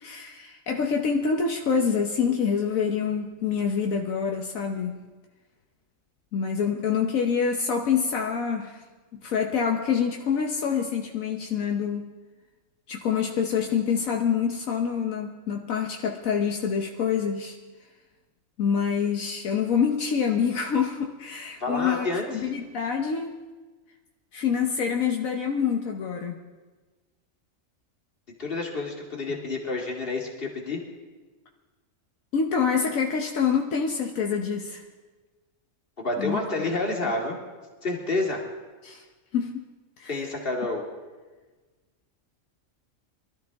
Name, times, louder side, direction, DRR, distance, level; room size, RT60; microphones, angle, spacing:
voice 1, 0.0-5.0 6.3-8.8 9.1-12.1 12.9-17.6 18.6-23.3 24.3-26.4 32.3-34.8 36.2-36.4 38.8-39.0 39.3-39.6 40.0-40.1, left 6 dB, 80° left, 2 dB, 1.4 m, -26 dB
voice 2, 21.6-22.2 28.4-30.8 36.0-37.4 37.8-38.4 40.1-40.8, left 2 dB, 40° left, 0 dB, 2.4 m, -29 dB
23.0 x 13.5 x 3.5 m, 1.3 s
omnidirectional pair, 1.4 m